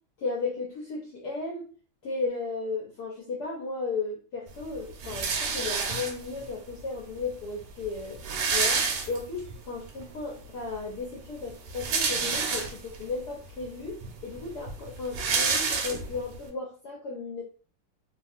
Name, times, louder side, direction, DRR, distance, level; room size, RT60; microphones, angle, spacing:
voice 1, 0.2-1.6 2.0-8.2 8.5-17.4, left 4 dB, 75° left, -2 dB, 0.9 m, -35 dB
sound 1, 5.0-6.5 7.3-7.4 7.6-7.7 8.0-9.6 10.0-10.1 11.5-13.0 13.6-13.7 14.0-16.4, right 5 dB, 85° right, 1.6 m, -28 dB
3.5 x 2.3 x 2.4 m, 0.41 s
omnidirectional pair, 2.4 m